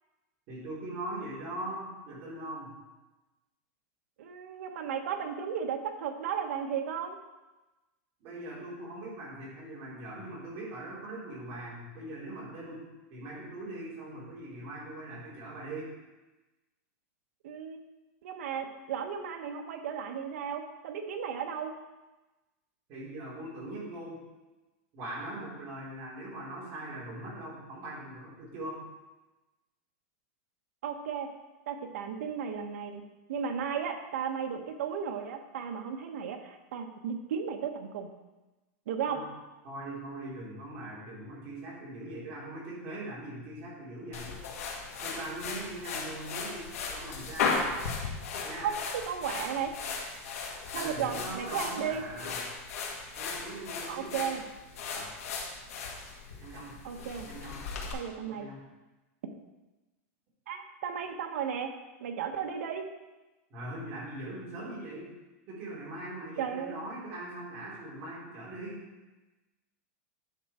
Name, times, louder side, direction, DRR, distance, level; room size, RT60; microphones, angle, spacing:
voice 1, 0.5-2.7 8.2-15.9 22.9-24.2 24.9-28.8 39.0-39.3 39.6-44.3 45.0-47.6 48.4-48.7 50.7-52.4 53.2-54.2 54.9-55.1 56.4-56.7 57.2-57.7 58.3-58.6 63.5-65.1 65.5-68.8, right 1 dB, 30° right, -6 dB, 3.3 m, -41 dB
voice 2, 4.2-7.2 17.4-17.8 18.2-21.7 30.8-31.3 31.7-33.0 33.3-38.1 38.9-39.2 47.8-47.9 48.6-48.8 49.1-49.7 50.7-52.0 53.9-54.5 56.8-57.3 57.8-58.5 60.5-61.7 62.0-62.9 66.4-66.8, right 7 dB, 70° right, 4 dB, 1.1 m, -35 dB
sound 1, 44.1-57.9, left 4 dB, 80° left, 1.9 m, -36 dB
10.0 x 6.0 x 4.3 m, 1.1 s
supercardioid pair, 175°, 8 cm